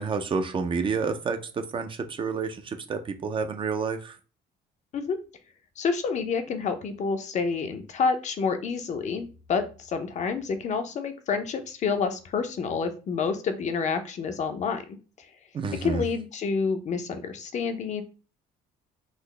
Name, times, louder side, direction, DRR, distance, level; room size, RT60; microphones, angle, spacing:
voice 1, 0.0-4.2 15.5-16.0, right 5 dB, 30° right, 0.4 m, -29 dB
voice 2, 5.8-14.8 15.8-18.0, left 5 dB, 45° left, 0.5 m, -28 dB
3.8 x 2.0 x 3.1 m
cardioid pair, 110°, 17 cm